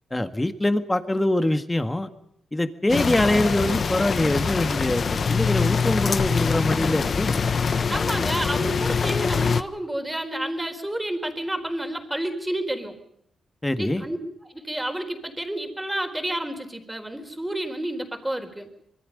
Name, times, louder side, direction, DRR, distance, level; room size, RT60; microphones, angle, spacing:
voice 1, 0.1-2.1 2.5-7.5 13.6-14.0, left 1 dB, 15° left, 9 dB, 1.8 m, -24 dB
sound 1, 2.9-9.6, left 5 dB, 50° left, 1.1 m, -24 dB
voice 2, 7.9-13.0 13.8-14.2 14.5-18.7, right 1 dB, 10° right, 6 dB, 4.2 m, -30 dB
26.0 x 22.5 x 5.3 m, 0.75 s
cardioid pair, 100°, 0 cm